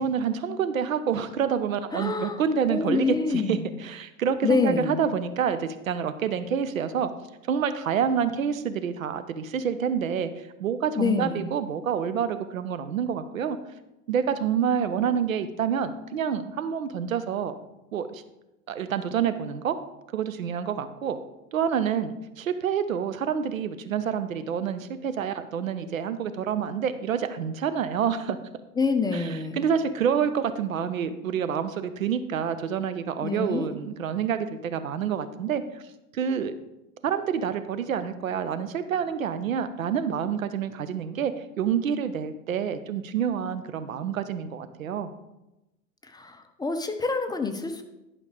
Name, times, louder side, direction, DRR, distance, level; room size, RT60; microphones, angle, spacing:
voice 1, 0.0-7.1 7.5-13.6 14.1-17.5 17.9-18.2 18.7-19.8 20.1-21.2 21.5-28.4 29.1-35.8 36.1-36.5 37.0-45.1, right 7 dB, 80° right, 11 dB, 0.8 m, -28 dB
voice 2, 1.9-2.4 2.7-3.6 4.4-5.0 11.0-11.5 28.8-29.6 33.2-33.7 46.0-47.8, left 4 dB, 10° left, 7 dB, 0.7 m, -26 dB
11.0 x 5.2 x 4.9 m, 0.96 s
figure-of-eight pair, 85°, 40 cm